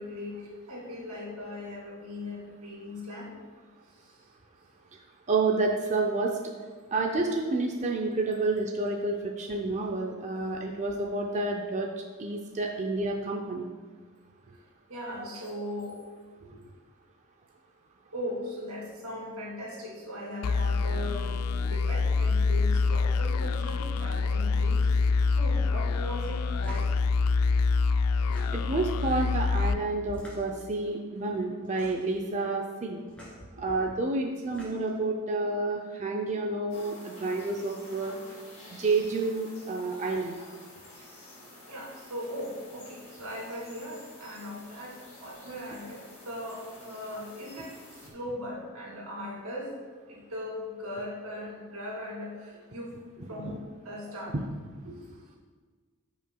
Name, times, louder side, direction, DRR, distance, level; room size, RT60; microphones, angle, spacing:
voice 1, 0.0-3.3 4.0-4.1 14.5-14.6 14.9-16.0 16.4-16.6 18.1-26.9 33.5-33.7 41.0-41.1 41.6-49.8 50.1-52.9 53.3-53.6 53.8-54.3 54.8-55.4, left 1 dB, 90° right, -3 dB, 2.4 m, -39 dB
voice 2, 5.3-6.4 6.9-11.9 12.2-13.6 28.5-33.0 33.6-38.2 38.7-40.4 53.2-53.5 54.3-54.4, right 3 dB, 35° right, 1 dB, 0.5 m, -29 dB
sound 1, 20.4-30.7, left 4 dB, 85° left, 0.3 m, -26 dB
sound 2, 26.6-26.9 28.1-28.8 30.1-30.7 31.6-32.1 33.1-33.4 34.3-35.0, equal, 5° left, 2.3 m, -47 dB
sound 3, 36.7-48.1, left 1 dB, 30° left, 1.8 m, -50 dB
13.5 x 5.5 x 2.3 m, 1.5 s
head